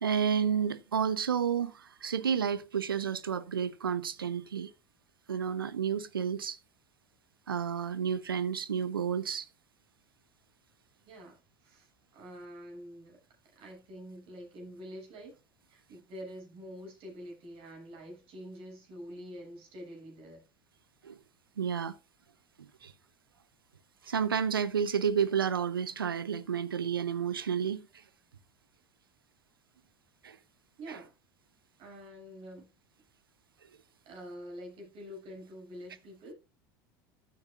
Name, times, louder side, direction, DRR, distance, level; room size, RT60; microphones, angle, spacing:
voice 1, 0.0-4.7 5.3-6.6 7.5-9.5 21.0-21.2 21.6-22.0 22.6-22.9 24.0-27.9 30.2-30.4 30.9-31.0, right 7 dB, 90° right, 0.8 m, -31 dB
voice 2, 11.0-11.9 12.1-13.2 13.5-15.3 15.7-20.4 30.8-31.1 31.8-32.7 34.1-36.4, equal, 55° right, 7.3 m, -46 dB
14.0 x 9.3 x 2.4 m
hypercardioid pair, 75°, 12 cm